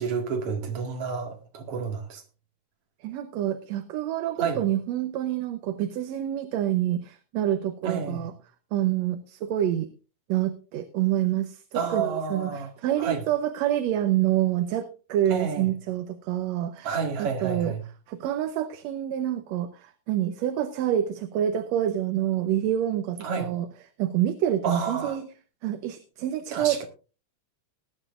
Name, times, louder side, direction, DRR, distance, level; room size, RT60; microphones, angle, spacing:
voice 1, 0.0-2.2 4.4-4.6 7.8-8.3 11.7-12.7 13.0-13.2 15.3-15.7 16.8-17.8 23.2-23.5 24.6-25.2 26.5-26.8, right 5 dB, 55° right, 2.9 m, -30 dB
voice 2, 3.0-8.3 8.7-9.9 10.3-17.7 18.1-23.7 24.0-25.3 25.6-26.8, right 11 dB, 75° right, 1.9 m, -27 dB
19.5 x 11.0 x 2.5 m
omnidirectional pair, 3.3 m